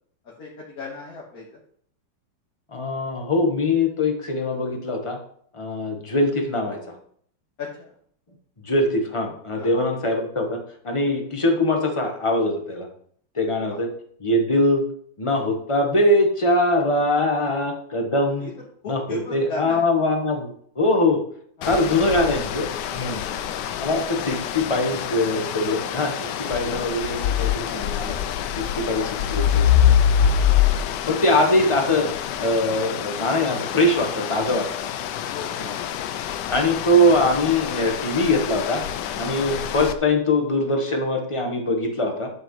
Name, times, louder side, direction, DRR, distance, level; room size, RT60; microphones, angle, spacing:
voice 1, 0.2-1.6 7.6-8.0 9.5-9.9 13.5-13.8 17.3-17.6 18.4-19.9 21.6-22.1 23.2-23.5 28.6-29.8 30.5-30.6 35.3-35.6 39.1-39.4, left 3 dB, 50° left, -4 dB, 1.9 m, -38 dB
voice 2, 2.7-5.2 5.5-6.9 8.6-12.9 13.3-13.9 14.2-14.8 15.2-18.5 18.9-19.0 19.3-21.2 21.7-23.2 23.8-28.1 28.5-29.7 31.1-32.1 32.4-34.7 35.6-35.7 36.5-38.8 39.2-42.3, left 1 dB, 20° left, 3 dB, 1.0 m, -22 dB
sound 1, 21.6-39.9, left 9 dB, 70° left, 1.1 m, -25 dB
11.5 x 7.3 x 3.1 m, 0.62 s
omnidirectional pair, 2.2 m